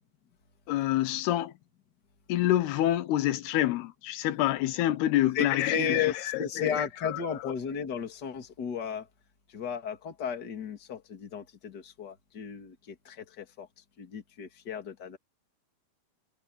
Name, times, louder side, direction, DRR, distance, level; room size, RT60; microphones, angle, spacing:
voice 1, 0.7-1.5 2.3-6.1 6.3-6.8, left 13 dB, 85° left, 3.0 m, -27 dB
voice 2, 5.3-9.1 9.5-13.7 14.0-15.2, left 7 dB, 30° left, 2.4 m, -34 dB
omnidirectional pair, 4.5 m